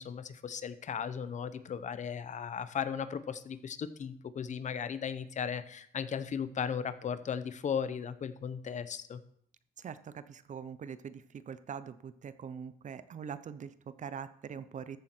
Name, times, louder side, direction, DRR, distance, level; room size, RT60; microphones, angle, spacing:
voice 1, 0.0-9.2, left 7 dB, 55° left, 13 dB, 0.8 m, -36 dB
voice 2, 9.8-15.0, right 7 dB, 55° right, 13 dB, 0.7 m, -43 dB
14.0 x 7.4 x 4.4 m, 0.64 s
cardioid pair, 110°, 15 cm